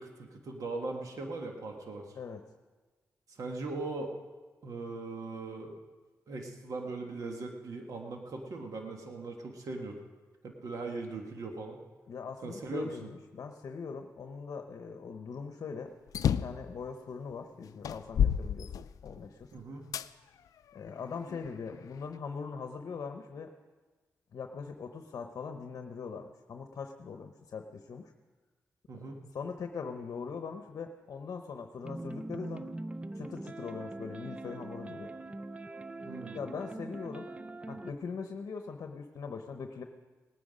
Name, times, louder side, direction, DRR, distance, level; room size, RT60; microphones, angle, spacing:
voice 1, 0.0-2.1 3.3-4.1 4.6-5.8 6.3-10.0 10.4-11.8 12.4-13.1 19.5-19.9 28.9-29.2 36.0-36.4, right 3 dB, 70° right, 2 dB, 1.5 m, -39 dB
voice 2, 12.1-15.9 16.3-19.5 20.7-23.5 24.3-28.1 28.9-29.0 29.3-32.7 33.1-35.1 36.3-37.3 37.7-39.8, left 5 dB, 70° left, 5 dB, 0.8 m, -41 dB
sound 1, 16.1-16.6 17.3-17.4 17.8-19.3 19.9-20.1 20.8-21.9, left 8 dB, 85° left, 0.4 m, -30 dB
sound 2, 31.8-37.9, right 2 dB, 20° right, 0.5 m, -42 dB
19.0 x 9.5 x 5.1 m, 1.3 s
cardioid pair, 85°, 6 cm